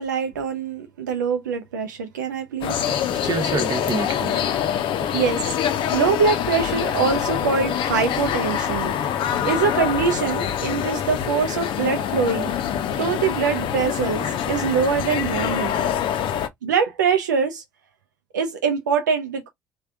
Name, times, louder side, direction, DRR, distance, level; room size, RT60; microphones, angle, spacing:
voice 1, 0.0-2.8 5.1-8.9 9.4-12.5 12.9-15.7 16.6-17.6 18.3-19.5, right 6 dB, 90° right, 0.4 m, -23 dB
sound 1, 2.6-16.5, left 9 dB, 60° left, 0.5 m, -25 dB
voice 2, 2.8-4.7 5.0-5.2, right 4 dB, 45° right, 0.8 m, -29 dB
3.4 x 2.2 x 3.4 m
hypercardioid pair, 50°, 10 cm